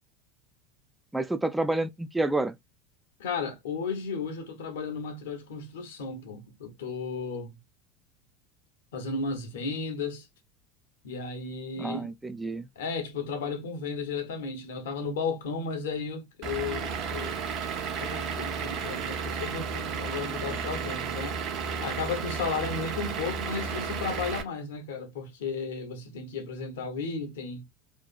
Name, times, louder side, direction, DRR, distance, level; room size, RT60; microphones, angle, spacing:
voice 1, 1.1-2.5 11.8-12.7, right 2 dB, 10° right, 0.3 m, -29 dB
voice 2, 3.2-7.6 8.9-10.3 11.0-12.1 12.8-17.4 18.0-21.4 21.8-27.6, left 4 dB, 65° left, 0.7 m, -34 dB
Vehicle / Engine, 16.4-24.4, right 6 dB, 45° right, 0.8 m, -33 dB
2.7 x 2.4 x 2.3 m
figure-of-eight pair, 75°, 0 cm